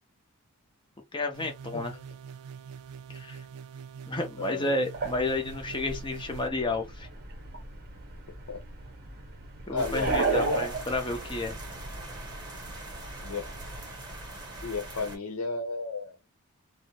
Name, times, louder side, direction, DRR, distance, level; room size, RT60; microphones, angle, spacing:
voice 1, 1.1-2.0 3.1-3.4 4.1-7.1 9.7-11.6, left 2 dB, 20° left, 0.5 m, -31 dB
sound 1, 1.3-6.5, right 7 dB, 85° right, 0.4 m, -44 dB
voice 2, 4.4-4.9 8.5-8.6 9.7-10.7 13.2-13.5 14.6-16.2, left 3 dB, 85° left, 0.8 m, -33 dB
sound 2, 4.9-13.9, right 3 dB, 45° right, 0.7 m, -35 dB
sound 3, 9.8-15.2, right 1 dB, 20° right, 0.9 m, -41 dB
2.4 x 2.0 x 2.7 m
head